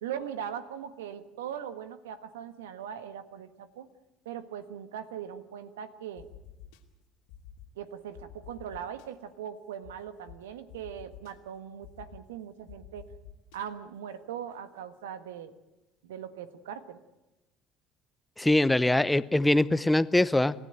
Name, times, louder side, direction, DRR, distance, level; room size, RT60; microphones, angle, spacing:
voice 1, 0.0-3.9 4.2-6.3 7.7-13.0 13.5-15.5 16.0-17.0, right 9 dB, 75° right, 12 dB, 1.4 m, -40 dB
sound 1, 6.2-6.8 7.3-7.7 8.1-9.1 9.8-9.9 10.3-10.4 10.7-11.3 11.8-12.2 12.7-13.6, left 12 dB, 70° left, 2.5 m, -48 dB
voice 2, 18.4-20.5, left 1 dB, 10° left, 17 dB, 0.7 m, -23 dB
28.0 x 15.0 x 9.0 m, 1.0 s
figure-of-eight pair, 60°, 0 cm